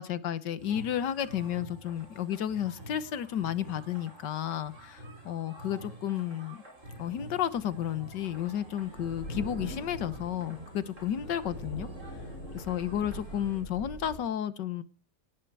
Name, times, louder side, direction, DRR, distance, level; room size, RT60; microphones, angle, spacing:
voice 1, 0.0-6.6 7.0-11.9 12.5-14.8, left 10 dB, 85° left, 1.7 m, -32 dB
sound 1, 0.6-13.6, right 1 dB, 45° right, 6.5 m, -48 dB
sound 2, 6.8-14.2, equal, 55° left, 7.1 m, -44 dB
19.0 x 11.0 x 4.7 m
omnidirectional pair, 1.8 m